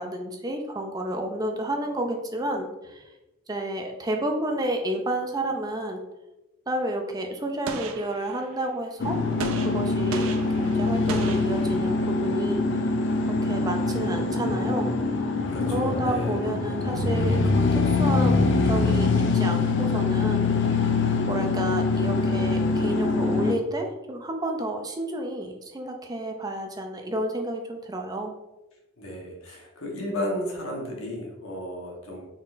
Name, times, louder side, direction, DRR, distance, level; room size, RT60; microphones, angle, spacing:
voice 1, 0.0-3.0 3.5-6.0 6.7-9.2 9.6-12.6 13.3-14.9 15.2-15.3 15.7-20.5 20.9-28.3, right 1 dB, 20° right, 3 dB, 0.4 m, -31 dB
Gunshot gunfire, 7.7-8.7 9.4-12.2, right 4 dB, 85° right, 0.4 m, -37 dB
sound 1, 9.0-23.6, left 3 dB, 60° left, 0.4 m, -24 dB
voice 2, 15.4-16.5 29.0-32.3, left 1 dB, 80° left, -1 dB, 1.0 m, -33 dB
4.0 x 3.7 x 2.5 m, 1.0 s
head